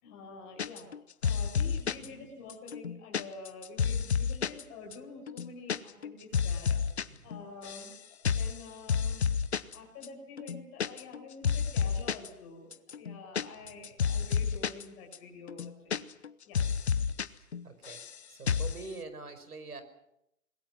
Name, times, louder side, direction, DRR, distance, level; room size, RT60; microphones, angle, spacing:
voice 1, 0.0-6.8 7.2-9.2 9.7-16.0 16.4-16.6, left 3 dB, 15° left, 1 dB, 5.1 m, -48 dB
sound 1, 0.6-1.0 1.2-2.1 2.5-4.6 4.9-5.0 5.3-5.8 6.0-7.0 7.3-7.9 8.2-8.6 8.9-9.8 10.0-10.1 10.4-11.2 11.4-12.3 12.7-14.8 15.1-15.2 15.5-16.3 16.5-17.3 17.5-18.1 18.5-18.8, left 6 dB, 50° left, 0.9 m, -30 dB
voice 2, 7.0-7.3 13.6-13.8 16.9-18.0 18.3-19.8, right 3 dB, 85° right, 10 dB, 5.6 m, -46 dB
28.0 x 21.5 x 6.1 m, 0.80 s
hypercardioid pair, 170°, 44 cm